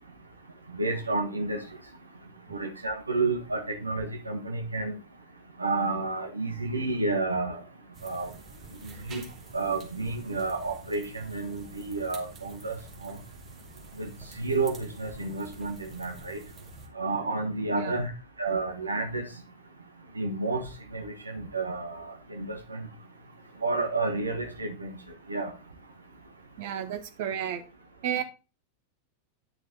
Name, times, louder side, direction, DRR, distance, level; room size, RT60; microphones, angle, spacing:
voice 1, 0.7-1.6 2.5-4.9 5.6-7.6 8.0-8.3 8.8-9.2 9.5-12.8 13.0-13.2 14.0-14.1 14.4-16.4 17.0-18.1 18.4-19.3 20.1-20.7 20.9-22.8 23.6-24.9 25.3-25.5, right 3 dB, 80° right, 5 dB, 1.6 m, -30 dB
sound 1, 7.9-16.9, right 3 dB, 30° right, 2.8 m, -48 dB
voice 2, 17.7-18.0 26.6-27.6 28.0-28.2, right 9 dB, 50° right, 7 dB, 1.6 m, -32 dB
10.0 x 6.1 x 4.0 m, 0.31 s
figure-of-eight pair, 90°, 0 cm